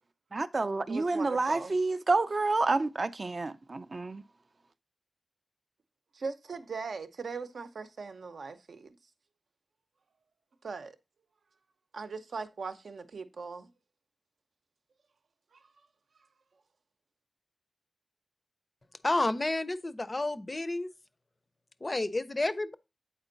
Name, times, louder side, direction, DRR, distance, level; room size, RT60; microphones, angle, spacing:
voice 1, 0.3-4.2, right 3 dB, 40° right, 0.4 m, -29 dB
voice 2, 0.9-1.8 6.1-9.0 10.6-11.0 11.9-13.7 15.5-15.6, right 4 dB, 75° right, 0.7 m, -40 dB
voice 3, 19.0-20.9 21.8-22.7, left 2 dB, 25° left, 0.5 m, -30 dB
8.1 x 4.4 x 3.8 m
wide cardioid pair, 135°, 0 cm